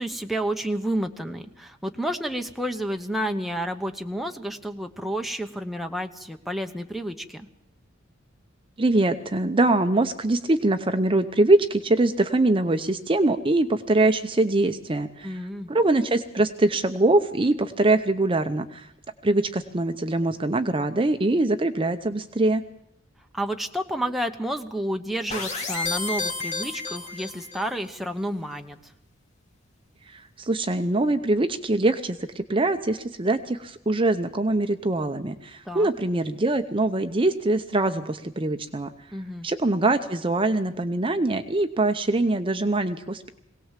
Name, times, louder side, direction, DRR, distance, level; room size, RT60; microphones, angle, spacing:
voice 1, 0.0-7.5 15.2-15.7 23.3-28.8 35.7-35.9 39.1-39.5, right 1 dB, ahead, 4 dB, 1.0 m, -30 dB
voice 2, 8.8-15.4 15.7-18.9 19.2-22.6 30.1-38.9 39.4-43.3, right 2 dB, 25° right, 8 dB, 0.7 m, -23 dB
sound 1, 25.3-27.7, left 3 dB, 35° left, 2.5 m, -31 dB
22.0 x 18.0 x 7.4 m, 0.78 s
head